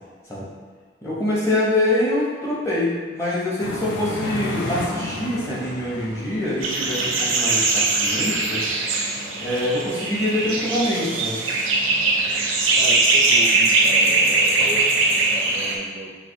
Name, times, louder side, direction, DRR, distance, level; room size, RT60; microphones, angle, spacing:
voice 1, 1.0-8.6 9.4-11.4, left 1 dB, 15° left, -7 dB, 0.7 m, -25 dB
sound 1, 3.6-8.7, left 2 dB, 60° left, 0.4 m, -33 dB
sound 2, 6.6-15.8, right 3 dB, 85° right, 0.5 m, -21 dB
voice 2, 12.7-16.2, right 1 dB, 30° right, -4 dB, 0.4 m, -35 dB
3.2 x 3.1 x 2.6 m, 1.5 s
head